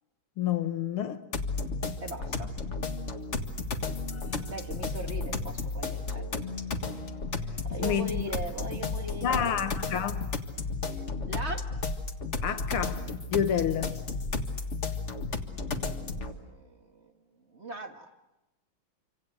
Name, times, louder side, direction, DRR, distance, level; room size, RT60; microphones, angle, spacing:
voice 1, 0.4-1.2 7.8-8.1 9.2-10.4 12.4-13.0 13.3-13.9, left 9 dB, 85° left, 2.2 m, -29 dB
sound 1, 1.3-16.3, left 3 dB, 35° left, 1.9 m, -33 dB
voice 2, 2.0-2.5 4.5-6.3 7.6-9.5 11.3-11.7 15.6-17.1 17.5-18.1, right 2 dB, 30° right, 2.2 m, -39 dB
27.5 x 26.0 x 7.9 m
omnidirectional pair, 2.3 m